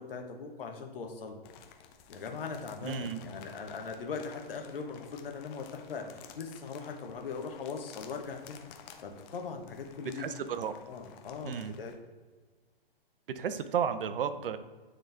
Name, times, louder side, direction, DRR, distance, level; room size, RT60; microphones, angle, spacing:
voice 1, 0.0-1.4 2.1-8.6 9.0-10.3 10.9-11.9, left 5 dB, 70° left, 3 dB, 1.2 m, -40 dB
sound 1, 1.4-12.0, left 8 dB, 25° left, 0.5 m, -54 dB
voice 2, 2.8-3.2 10.0-10.7 11.4-11.7 13.3-14.6, right 7 dB, 65° right, 11 dB, 0.6 m, -33 dB
9.4 x 3.9 x 3.4 m, 1.4 s
hypercardioid pair, 125°, 29 cm